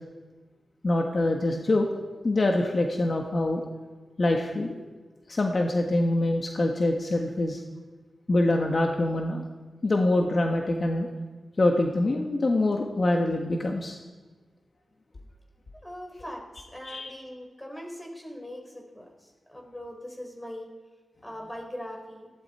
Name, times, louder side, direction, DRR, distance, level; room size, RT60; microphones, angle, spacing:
voice 1, 0.8-1.9 2.2-3.6 4.2-4.8 5.3-7.6 8.3-9.4 9.8-11.1 11.6-14.0 16.8-17.1, left 2 dB, 50° left, 2 dB, 1.5 m, -25 dB
voice 2, 15.8-20.7 21.2-22.3, equal, 15° left, 1 dB, 4.3 m, -41 dB
19.0 x 16.0 x 4.4 m, 1.3 s
cardioid pair, 65°, 0 cm